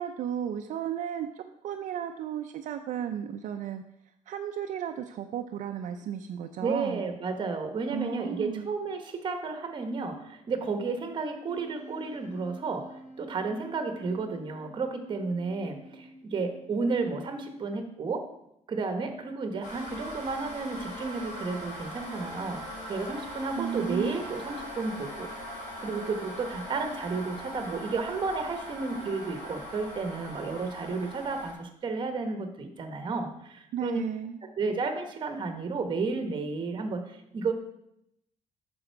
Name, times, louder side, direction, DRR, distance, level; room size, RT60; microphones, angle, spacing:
voice 1, 0.0-3.8 4.3-7.1 7.9-8.7 23.6-24.2 33.7-34.4, right 9 dB, 70° right, 5 dB, 0.5 m, -34 dB
voice 2, 6.6-18.3 18.7-25.3 25.8-34.1 34.6-37.5, right 4 dB, 35° right, 6 dB, 1.1 m, -32 dB
Wind instrument woodwind instrument, 11.5-17.1, equal, 50° left, 1.4 m, -48 dB
sound 1, 19.6-31.5, equal, 75° left, 3.6 m, -41 dB
8.8 x 6.2 x 4.6 m, 0.79 s
cardioid pair, 165°, 13 cm